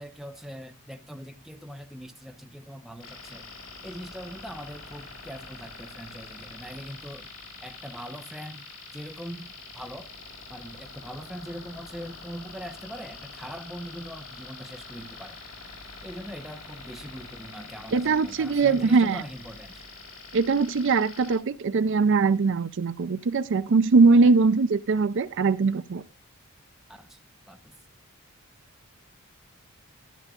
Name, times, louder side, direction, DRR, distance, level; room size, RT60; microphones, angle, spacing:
voice 1, 0.0-3.5 3.8-7.3 7.6-8.7 8.9-10.1 10.5-15.4 16.0-19.8 24.2-24.3 26.9-27.7, equal, ahead, 0.8 m, -41 dB
sound 1, 3.0-21.4, left 4 dB, 75° left, 5.9 m, -45 dB
voice 2, 17.9-19.2 20.3-26.0, right 4 dB, 55° right, 0.4 m, -21 dB
12.5 x 12.0 x 2.4 m
head